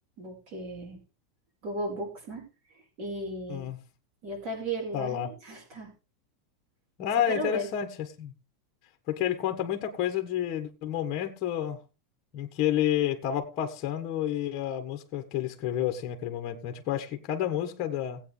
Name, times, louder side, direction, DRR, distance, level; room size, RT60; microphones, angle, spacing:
voice 1, 0.2-1.0 1.6-2.4 3.0-3.7 4.2-5.9 7.1-7.7, right 1 dB, 40° right, 5.1 m, -35 dB
voice 2, 3.5-3.8 4.9-5.3 7.0-7.9 8.2-8.3 9.1-11.8 12.3-18.2, left 10 dB, 35° left, 1.5 m, -30 dB
18.0 x 8.3 x 3.4 m
supercardioid pair, 160°, 2 cm